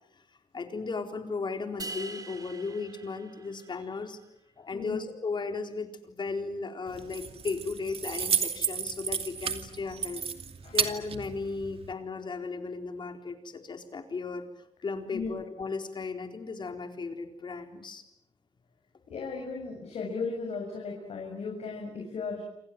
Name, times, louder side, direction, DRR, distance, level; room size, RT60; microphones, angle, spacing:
voice 1, 0.5-4.2 4.6-10.2 10.7-14.5 14.8-18.0, left 4 dB, 45° left, 6 dB, 4.1 m, -36 dB
sound 1, 1.8-4.1, right 3 dB, 35° right, 3.0 m, -43 dB
Keys jangling, 6.9-11.9, right 6 dB, 55° right, 2.6 m, -32 dB
voice 2, 19.1-22.4, left 4 dB, 65° left, 0 dB, 6.7 m, -36 dB
28.0 x 27.0 x 7.7 m, 0.79 s
cardioid pair, 100°, 11 cm